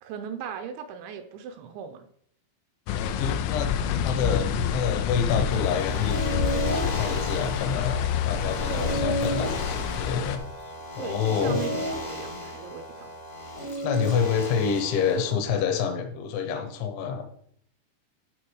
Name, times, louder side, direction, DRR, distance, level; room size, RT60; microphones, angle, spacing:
voice 1, 0.0-2.1 8.6-9.0 11.0-13.1, right 7 dB, 80° right, 7 dB, 2.8 m, -38 dB
sound 1, 2.9-10.4, left 8 dB, 90° left, 3.4 m, -28 dB
voice 2, 2.9-10.4 11.0-11.6 13.8-17.2, left 7 dB, 75° left, 6 dB, 3.3 m, -28 dB
sound 2, 5.5-15.3, equal, 45° left, 0.8 m, -33 dB
12.0 x 4.0 x 6.4 m, 0.67 s
omnidirectional pair, 5.7 m